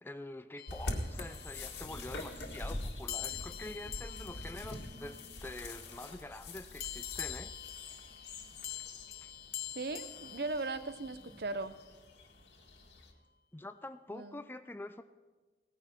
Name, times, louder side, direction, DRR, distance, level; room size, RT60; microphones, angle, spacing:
voice 1, 0.0-7.5 9.2-9.3 13.5-15.0, left 1 dB, 10° left, 11 dB, 0.4 m, -46 dB
sound 1, 0.6-1.8 3.1-5.8 6.8-11.3, left 12 dB, 55° left, 0.7 m, -45 dB
sound 2, 0.7-13.1, left 1 dB, 80° left, 2.0 m, -44 dB
voice 2, 9.7-11.8 14.1-14.4, right 3 dB, 60° right, 12 dB, 0.7 m, -38 dB
18.0 x 15.0 x 4.5 m, 1.3 s
head